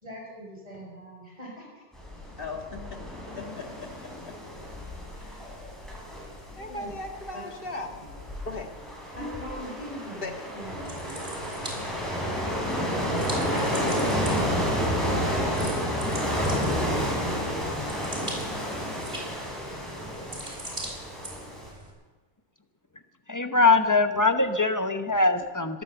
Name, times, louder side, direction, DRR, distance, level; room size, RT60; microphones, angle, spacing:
voice 1, 0.0-1.8 6.5-6.9 7.3-7.4 8.0-8.1 9.1-11.1 13.3-16.1, right 1 dB, 35° right, -3 dB, 6.1 m, -39 dB
sound 1, 1.9-21.7, equal, ahead, 5.0 m, -31 dB
voice 2, 2.4-3.0 3.4-4.3 5.2-5.6 6.6-7.9 8.5-8.7 10.2-10.3, left 2 dB, 55° left, 3 dB, 2.0 m, -38 dB
sound 2, 10.6-21.9, right 1 dB, 50° right, 4.3 m, -42 dB
voice 3, 23.3-25.8, left 3 dB, 20° left, 7 dB, 0.8 m, -22 dB
22.0 x 9.3 x 7.0 m, 1.3 s
omnidirectional pair, 1.2 m